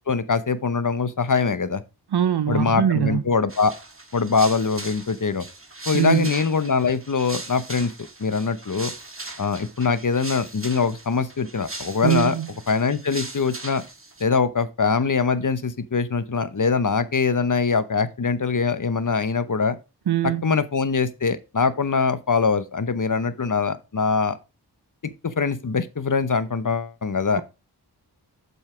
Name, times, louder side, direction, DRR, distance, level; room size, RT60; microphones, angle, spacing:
voice 1, 0.1-1.8 2.5-3.7 4.1-5.4 5.9-7.9 8.2-8.9 9.4-12.4 12.7-13.8 14.2-19.8 20.4-24.4 25.0-27.4, left 5 dB, 50° left, 0.9 m, -23 dB
voice 2, 2.1-3.2 5.9-6.3 12.0-12.5 20.1-20.5, right 10 dB, 70° right, 0.6 m, -22 dB
sound 1, 3.5-14.2, right 2 dB, 30° right, 1.8 m, -39 dB
7.6 x 5.5 x 4.9 m
wide cardioid pair, 45°, 41 cm